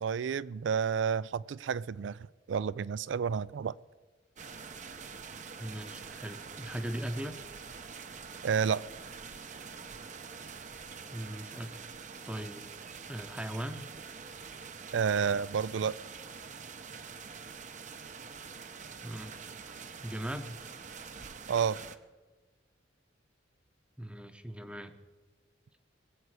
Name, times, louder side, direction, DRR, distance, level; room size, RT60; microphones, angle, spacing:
voice 1, 0.0-3.8 8.4-8.8 14.9-16.0 21.5-21.8, right 7 dB, 70° right, 21 dB, 0.4 m, -30 dB
sound 1, 4.4-22.0, right 5 dB, 40° right, 0.7 m, -46 dB
voice 2, 5.6-7.4 11.1-11.8 12.2-12.7 13.1-13.9 19.0-19.7 20.0-20.6 24.0-24.9, equal, 5° right, 8 dB, 0.8 m, -39 dB
22.0 x 8.3 x 4.8 m, 1.3 s
head